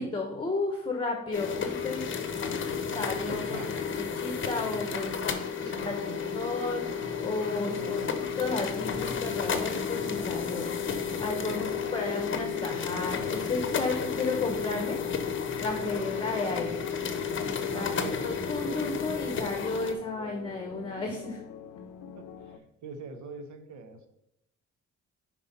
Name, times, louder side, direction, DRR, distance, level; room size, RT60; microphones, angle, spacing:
voice 1, 0.0-2.7 2.9-6.0 6.3-8.0 8.4-15.0 15.6-16.9 17.7-21.4, left 3 dB, 15° left, 3 dB, 1.0 m, -33 dB
sound 1, 1.3-19.9, left 6 dB, 40° left, 0.8 m, -32 dB
voice 2, 3.3-3.7 5.6-6.1 7.6-8.1 11.5-11.8 15.8-16.1 17.7-18.3 22.2-24.1, right 4 dB, 70° right, 7 dB, 1.0 m, -42 dB
sound 2, 7.0-22.6, left 6 dB, 75° left, 0.6 m, -45 dB
5.5 x 4.5 x 5.3 m, 0.81 s
cardioid pair, 90°, 30 cm